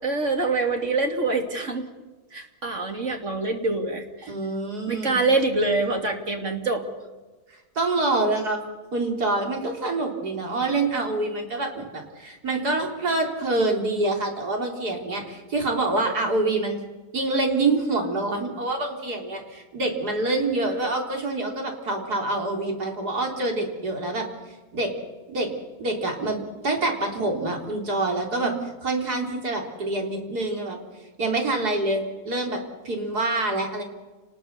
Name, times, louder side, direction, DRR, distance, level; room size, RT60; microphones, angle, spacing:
voice 1, 0.0-1.9 2.3-4.3 4.9-6.8 28.4-28.7, right 3 dB, 50° right, 4 dB, 3.0 m, -25 dB
voice 2, 4.3-5.2 7.8-8.6 8.9-16.8 17.1-24.3 24.7-24.9 25.3-25.5 25.8-28.5 28.8-30.8 31.2-33.8, right 2 dB, 80° right, 1 dB, 4.2 m, -26 dB
29.5 x 20.0 x 6.9 m, 1.2 s
omnidirectional pair, 1.6 m